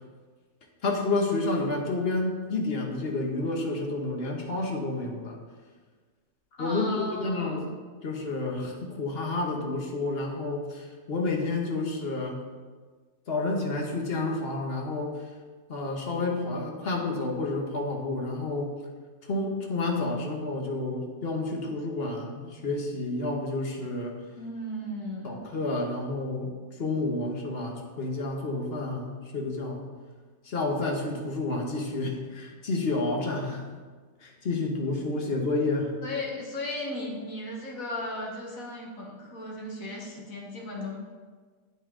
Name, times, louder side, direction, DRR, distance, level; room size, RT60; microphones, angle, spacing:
voice 1, 0.8-5.4 6.6-7.7 8.0-12.4 13.3-15.2 15.7-18.8 19.3-24.1 25.2-26.5 26.8-29.8 30.4-33.6 34.2-36.0, left 2 dB, 45° left, 1 dB, 1.1 m, -30 dB
voice 2, 6.6-7.6 24.4-25.4 36.0-41.0, left 1 dB, 60° left, -2 dB, 1.7 m, -36 dB
8.9 x 5.6 x 3.7 m, 1.5 s
omnidirectional pair, 1.7 m